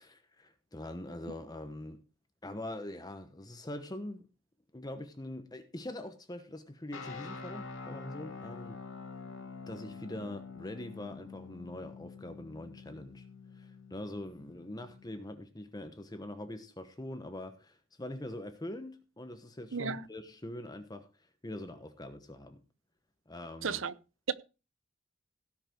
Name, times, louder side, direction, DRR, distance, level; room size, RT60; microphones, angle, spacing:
voice 1, 0.0-2.0 2.4-4.3 4.7-8.8 9.7-13.2 13.6-21.1 21.4-22.6 23.3-23.8, left 1 dB, 20° left, 1.1 m, -43 dB
sound 1, 6.9-15.2, left 4 dB, 70° left, 2.3 m, -46 dB
voice 2, 19.7-20.0 23.6-23.9, right 5 dB, 75° right, 0.7 m, -34 dB
17.5 x 5.9 x 4.5 m
head